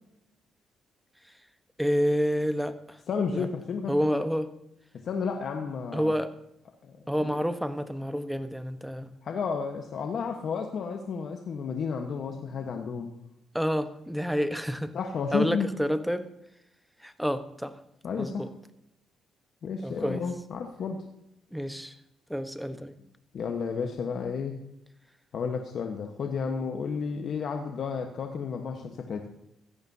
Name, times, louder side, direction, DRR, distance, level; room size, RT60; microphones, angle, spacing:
voice 1, 1.8-3.0 3.3-3.5 3.9-4.5 5.9-6.3 7.1-9.1 13.5-14.9 15.3-16.3 17.0-17.8 18.2-18.5 19.8-20.2 21.5-21.9 22.3-22.9, equal, ahead, 9 dB, 1.1 m, -29 dB
voice 2, 3.1-4.2 5.0-6.1 6.8-7.0 9.2-13.1 14.9-15.7 18.0-18.5 19.6-21.0 23.3-24.6 25.3-29.3, left 5 dB, 60° left, 3 dB, 1.2 m, -32 dB
16.5 x 14.0 x 2.8 m, 0.82 s
cardioid pair, 90°, 0 cm